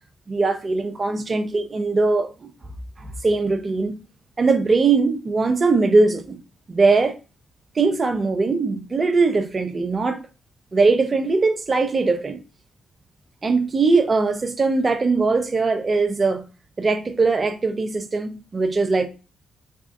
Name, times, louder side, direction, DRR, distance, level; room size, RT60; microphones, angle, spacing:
voice 1, 0.3-2.3 3.0-4.0 4.4-6.4 6.7-7.2 7.8-10.2 10.7-12.4 13.4-16.4 16.8-19.1, right 3 dB, 40° right, 0.6 m, -20 dB
3.5 x 3.5 x 2.3 m
supercardioid pair, 50°, 0 cm